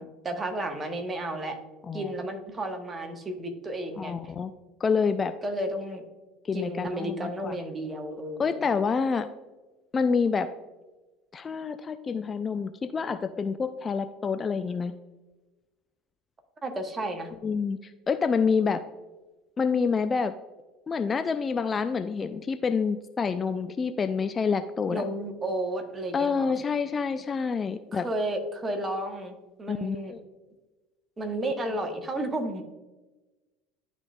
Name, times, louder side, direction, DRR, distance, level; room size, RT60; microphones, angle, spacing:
voice 1, 0.0-1.6 1.9-4.3 5.4-6.0 6.5-8.6 16.6-17.3 24.9-26.5 27.9-30.1 31.2-32.6, right 1 dB, 25° right, 4 dB, 1.2 m, -32 dB
voice 2, 4.0-4.5 4.8-5.3 6.4-7.6 8.4-9.3 9.9-10.5 11.3-15.0 17.4-18.8 19.6-20.3 20.9-25.0 26.1-28.1 29.7-30.2, left 5 dB, 30° left, 10 dB, 0.3 m, -27 dB
11.5 x 4.0 x 2.3 m, 1.2 s
figure-of-eight pair, 65°, 0 cm